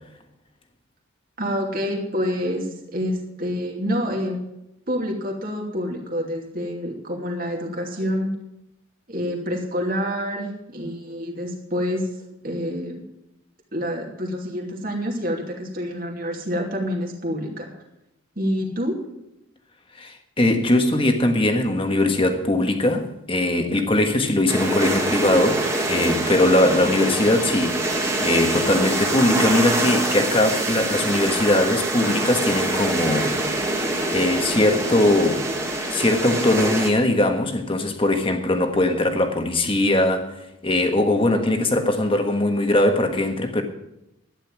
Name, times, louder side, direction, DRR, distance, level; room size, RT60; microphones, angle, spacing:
voice 1, 1.4-4.4 4.9-8.3 9.1-12.1 12.4-13.0 13.7-17.7 18.4-19.0, equal, 45° right, 2.7 m, -27 dB
voice 2, 20.0-33.8 34.1-35.5 35.9-40.3 40.6-43.6, left 1 dB, 25° left, 1.4 m, -21 dB
sound 1, 24.5-36.9, right 2 dB, 15° right, 1.8 m, -25 dB
12.5 x 10.0 x 6.0 m
head